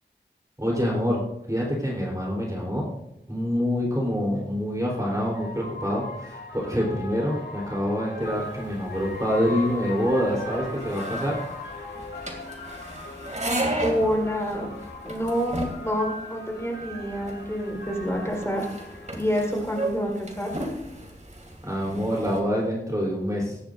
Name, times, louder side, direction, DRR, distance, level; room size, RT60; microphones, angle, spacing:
voice 1, 0.6-1.2 1.5-2.8 3.3-11.4 21.6-23.6, equal, 20° right, -3 dB, 3.7 m, -26 dB
sound 1, 4.2-19.8, left 2 dB, 80° left, 3.0 m, -39 dB
sound 2, 8.2-22.4, right 1 dB, 40° right, 2.6 m, -35 dB
voice 2, 13.8-14.8 15.0-18.6 19.1-20.5, equal, 15° left, -1 dB, 4.6 m, -27 dB
23.0 x 10.5 x 2.6 m, 0.82 s
wide cardioid pair, 45°, 19 cm